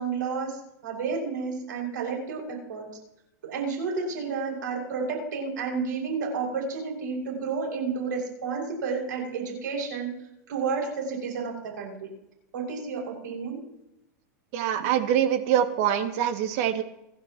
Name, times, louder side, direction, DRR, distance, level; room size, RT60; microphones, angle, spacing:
voice 1, 0.0-2.9 3.4-10.1 10.5-12.1 12.5-13.6, right 5 dB, 90° right, 1 dB, 6.5 m, -31 dB
voice 2, 14.5-16.8, right 10 dB, 55° right, 5 dB, 2.2 m, -24 dB
29.5 x 12.0 x 3.1 m, 0.84 s
supercardioid pair, 140°, 10 cm